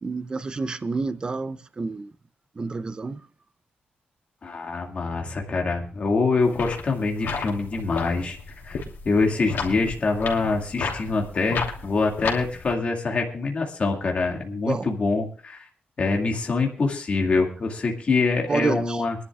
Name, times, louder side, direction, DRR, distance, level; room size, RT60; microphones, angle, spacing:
voice 1, 0.0-2.1 2.6-3.2 14.7-14.9 18.5-19.0, right 3 dB, 25° right, 0.5 m, -28 dB
voice 2, 4.4-8.4 8.6-8.8 9.1-15.6 16.0-19.2, left 3 dB, 35° left, 2.0 m, -25 dB
sound 1, 6.4-12.7, left 5 dB, 75° left, 3.0 m, -33 dB
24.0 x 11.0 x 2.3 m
wide cardioid pair, 165°, 4 cm